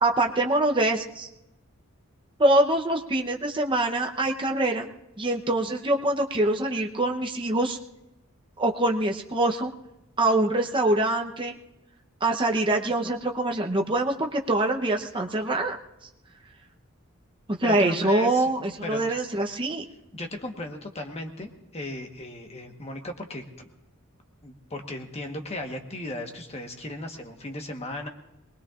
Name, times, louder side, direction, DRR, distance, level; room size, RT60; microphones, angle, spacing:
voice 1, 0.0-1.3 2.4-4.9 5.2-7.8 8.6-9.7 10.2-11.5 12.2-15.8 17.6-19.8, right 2 dB, 25° right, 2 dB, 0.9 m, -24 dB
voice 2, 17.6-18.5 18.8-19.0 20.1-23.7 24.4-28.1, left 1 dB, 30° left, 3 dB, 1.3 m, -36 dB
23.0 x 20.0 x 2.5 m, 0.95 s
head